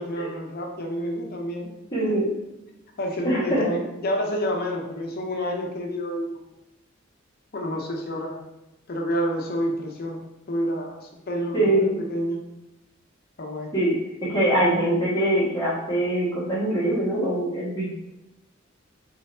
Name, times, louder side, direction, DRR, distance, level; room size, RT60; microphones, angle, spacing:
voice 1, 0.0-1.7 2.0-2.2 3.0-6.3 7.5-8.4 8.9-10.2 10.5-12.4 13.4-13.7, equal, 50° left, 1 dB, 0.6 m, -29 dB
voice 2, 1.9-2.3 3.2-3.6 11.5-12.0 13.7-14.0 14.3-17.9, right 1 dB, 20° left, -10 dB, 1.4 m, -23 dB
3.9 x 3.8 x 2.7 m, 0.94 s
head